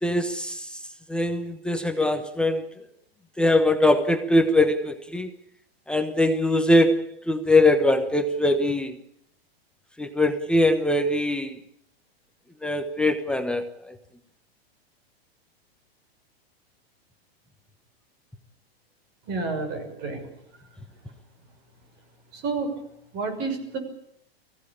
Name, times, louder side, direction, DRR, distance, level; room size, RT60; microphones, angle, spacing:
voice 1, 0.0-0.8 1.1-2.6 3.4-5.3 5.9-9.0 10.0-11.6 12.6-13.7, left 1 dB, 5° left, 5 dB, 1.1 m, -22 dB
voice 2, 19.3-20.3 22.3-22.8 23.1-23.8, right 3 dB, 35° right, 5 dB, 6.5 m, -30 dB
23.5 x 16.0 x 8.7 m, 0.72 s
supercardioid pair, 150°, 31 cm